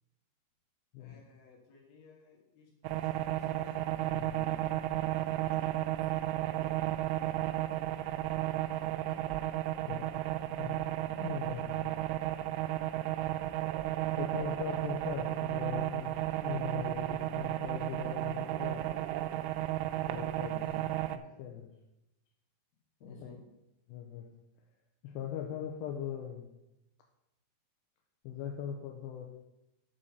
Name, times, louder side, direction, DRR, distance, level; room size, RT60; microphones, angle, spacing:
voice 1, 1.0-3.7 5.5-5.6 20.5-21.0 23.0-23.4, left 4 dB, 60° left, -2 dB, 3.4 m, -54 dB
sound 1, 2.8-21.2, right 14 dB, 90° right, 3.0 m, -33 dB
voice 2, 4.1-4.5 9.9-10.1 10.6-11.9 14.2-18.9 20.1-20.5 21.1-21.7 23.2-23.3 23.9-24.3 25.0-26.5 28.2-29.3, left 9 dB, 80° left, 2 dB, 2.7 m, -40 dB
7.5 x 5.6 x 6.5 m, 0.91 s
omnidirectional pair, 5.3 m